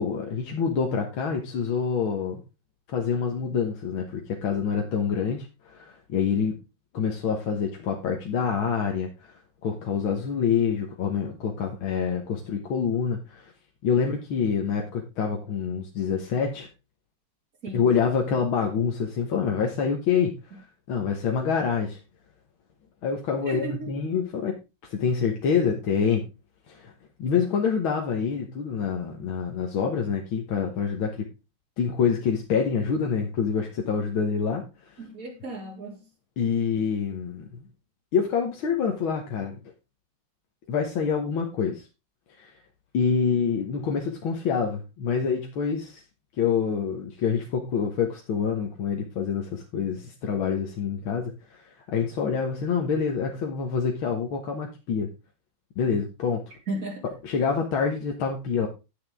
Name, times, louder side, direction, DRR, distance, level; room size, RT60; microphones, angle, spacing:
voice 1, 0.0-2.4 2.9-6.6 6.9-13.5 13.8-16.7 17.7-22.0 23.0-24.6 24.9-26.3 26.7-26.9 27.2-31.3 31.8-35.0 36.4-37.6 38.1-39.6 40.7-41.8 42.4-42.5 42.9-46.0 46.4-51.6 51.9-55.1 55.8-56.4 57.0-58.7, left 6 dB, 85° left, 2.1 m, -26 dB
voice 2, 23.5-23.9 35.0-36.0 56.7-57.1, right 2 dB, 40° right, 3.4 m, -34 dB
10.0 x 9.6 x 3.6 m
omnidirectional pair, 2.2 m